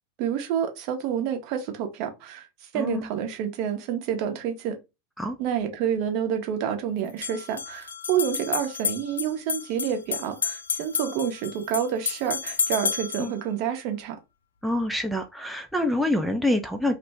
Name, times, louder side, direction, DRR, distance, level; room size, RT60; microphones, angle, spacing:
voice 1, 0.2-2.5 2.7-4.8 5.4-14.2, right 9 dB, 50° right, 0.7 m, -28 dB
voice 2, 2.7-3.1 5.2-5.4 13.2-13.3 14.6-17.0, left 1 dB, ahead, 0.4 m, -26 dB
sound 1, 5.4-5.5 7.0-13.3, left 6 dB, 80° left, 0.3 m, -31 dB
2.5 x 2.1 x 3.3 m
figure-of-eight pair, 90°, 0 cm